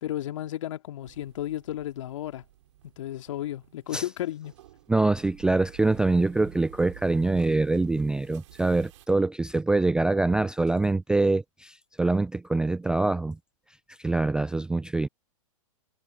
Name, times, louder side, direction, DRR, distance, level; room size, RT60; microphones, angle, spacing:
voice 1, 0.0-2.4 3.0-4.5, left 13 dB, 65° left, 2.3 m, -33 dB
sound 1, 1.0-9.1, right 14 dB, 65° right, 5.3 m, -51 dB
voice 2, 4.9-13.4 14.0-15.1, right 2 dB, 5° right, 0.3 m, -24 dB
hypercardioid pair, 115°, 17 cm